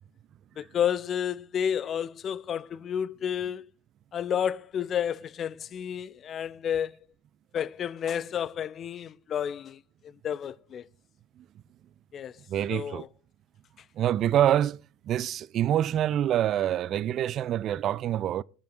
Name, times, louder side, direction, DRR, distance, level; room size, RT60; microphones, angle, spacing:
voice 1, 0.6-3.7 4.1-7.0 7.5-10.8 12.1-12.4 12.7-13.1, left 9 dB, 35° left, 0.6 m, -31 dB
voice 2, 12.5-13.0 14.0-14.8 15.1-18.4, right 11 dB, 40° right, 0.4 m, -26 dB
22.0 x 10.5 x 2.5 m
figure-of-eight pair, 70°, 0 cm